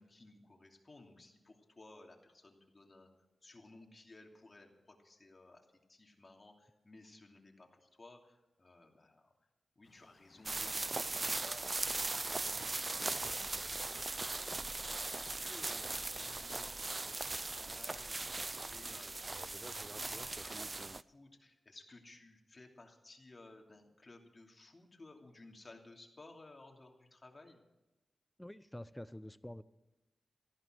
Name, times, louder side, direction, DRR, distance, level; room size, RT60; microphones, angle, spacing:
voice 1, 0.0-3.1 3.4-9.3 9.8-14.7 15.1-27.6, left 2 dB, 40° left, 2 dB, 2.8 m, -58 dB
sound 1, 9.8-16.1, left 4 dB, 65° left, 1.8 m, -66 dB
sound 2, 10.5-21.0, right 3 dB, 35° right, 0.5 m, -39 dB
voice 2, 28.4-29.6, left 1 dB, 10° left, 16 dB, 0.7 m, -47 dB
14.5 x 11.5 x 7.7 m, 0.99 s
cardioid pair, 65°, 0 cm